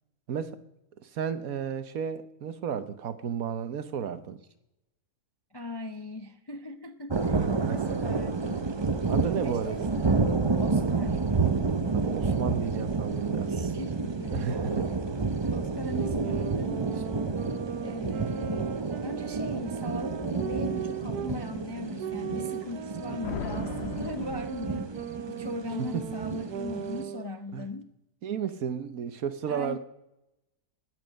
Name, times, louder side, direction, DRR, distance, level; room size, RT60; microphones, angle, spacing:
voice 1, 0.3-0.6 1.0-4.4 7.5-8.1 9.1-9.8 11.9-13.5 14.3-14.9 25.8-26.0 27.5-27.6 28.2-29.8, right 7 dB, 65° right, 12 dB, 1.4 m, -33 dB
voice 2, 5.5-8.7 9.4-10.3 10.6-11.2 13.4-14.4 15.5-17.0 17.8-18.7 19.0-24.9 25.3-27.9 29.5-29.8, left 1 dB, 25° left, 8 dB, 0.5 m, -39 dB
sound 1, 7.1-27.0, right 4 dB, 30° right, 0.5 m, -30 dB
sound 2, 15.9-21.4 22.0-27.3, right 9 dB, 85° right, 1.5 m, -38 dB
sound 3, 23.2-25.3, left 8 dB, 50° left, 0.9 m, -38 dB
23.0 x 9.7 x 6.4 m, 0.89 s
omnidirectional pair, 1.6 m